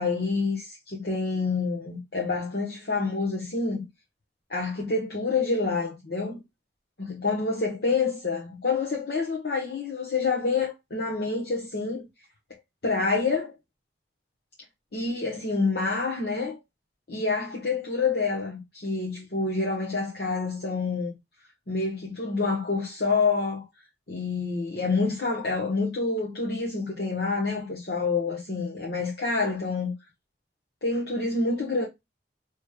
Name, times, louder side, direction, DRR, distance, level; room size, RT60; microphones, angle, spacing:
voice 1, 0.0-3.8 4.5-6.4 7.0-12.1 12.8-13.5 14.9-16.6 17.1-21.1 21.7-23.6 24.1-29.9 30.8-31.9, left 4 dB, 60° left, 1.0 m, -27 dB
4.9 x 3.0 x 2.3 m
head